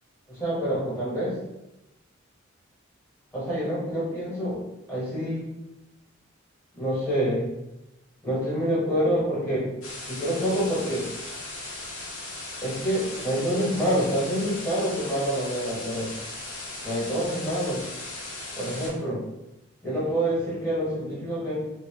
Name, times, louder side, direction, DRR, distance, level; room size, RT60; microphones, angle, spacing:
voice 1, 0.3-1.4 3.3-4.6 4.9-5.5 6.7-7.5 8.2-9.7 10.1-11.1 12.6-16.1 16.8-17.9 18.5-19.2 19.8-21.7, equal, 10° left, -7 dB, 0.9 m, -27 dB
sound 1, 9.8-18.9, left 2 dB, 85° left, 0.8 m, -38 dB
3.1 x 2.5 x 3.1 m, 0.93 s
head